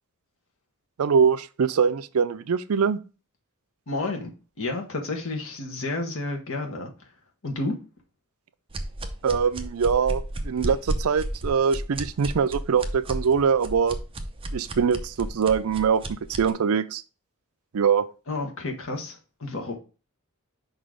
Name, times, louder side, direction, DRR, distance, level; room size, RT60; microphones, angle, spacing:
voice 1, 1.0-3.0 9.2-14.0 14.5-16.0 16.4-17.0 17.7-18.1, right 6 dB, 70° right, 0.4 m, -23 dB
voice 2, 3.9-4.3 4.6-6.9 7.4-7.7 18.3-19.8, left 2 dB, 65° left, 1.6 m, -30 dB
sound 1, 8.7-16.5, right 1 dB, 25° right, 0.7 m, -33 dB
5.4 x 4.1 x 4.9 m
head